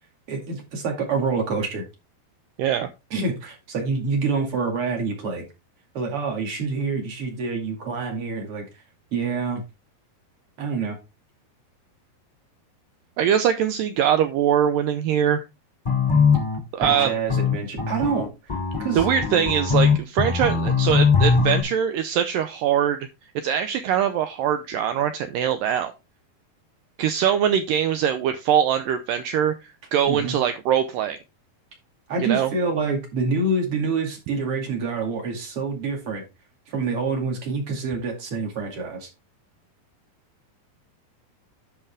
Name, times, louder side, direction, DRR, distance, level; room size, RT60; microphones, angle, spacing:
voice 1, 0.3-1.8 3.1-5.4 5.9-8.7 9.1-9.6 10.6-11.0 16.8-19.0 30.1-30.3 32.1-36.2 36.7-39.1, right 4 dB, 40° right, 2.7 m, -27 dB
voice 2, 2.6-2.9 13.2-15.4 16.7-17.1 19.0-23.0 23.4-25.9 27.0-29.5 29.9-31.2 32.3-32.5, right 9 dB, 90° right, 2.0 m, -22 dB
sound 1, 15.8-21.6, left 5 dB, 35° left, 0.7 m, -21 dB
11.0 x 5.6 x 3.5 m
omnidirectional pair, 4.6 m